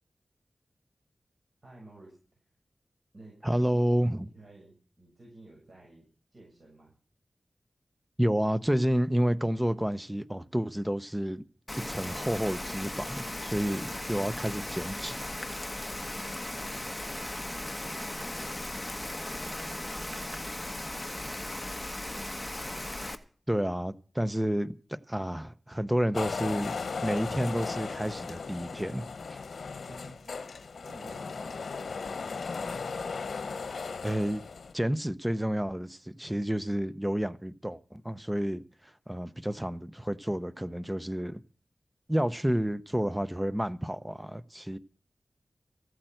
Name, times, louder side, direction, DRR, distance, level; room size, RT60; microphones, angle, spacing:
voice 1, 1.6-2.2 3.1-6.1 6.3-6.9 15.9-19.0 19.3-22.6 29.9-30.5 30.8-32.6, right 2 dB, 50° right, 7.2 m, -54 dB
voice 2, 3.4-4.3 8.2-11.5 11.9-15.3 15.8-15.9 23.5-26.7 27.0-29.0 34.0-34.4 34.7-41.4 42.1-44.8, equal, 10° right, 0.6 m, -30 dB
Rain, 11.7-23.1, left 1 dB, 15° left, 1.4 m, -37 dB
sound 1, 26.1-34.7, left 4 dB, 85° left, 0.9 m, -36 dB
15.0 x 8.7 x 7.7 m
wide cardioid pair, 105°, 0 cm